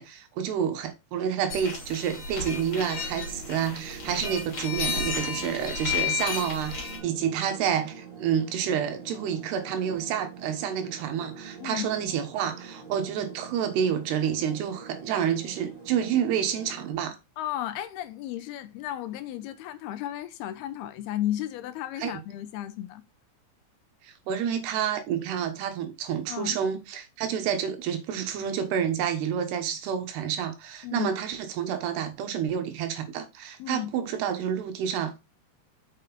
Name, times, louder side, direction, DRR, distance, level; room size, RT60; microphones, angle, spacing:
voice 1, 0.0-17.2 22.0-22.1 24.0-35.2, right 8 dB, 80° right, 3.3 m, -29 dB
sound 1, 1.5-7.0, left 5 dB, 30° left, 3.4 m, -32 dB
sound 2, 2.5-16.9, right 5 dB, 15° right, 1.5 m, -45 dB
voice 2, 17.4-23.0 26.3-26.6 30.8-31.1 33.6-33.9, left 13 dB, 85° left, 2.6 m, -34 dB
6.7 x 6.4 x 4.1 m
omnidirectional pair, 4.7 m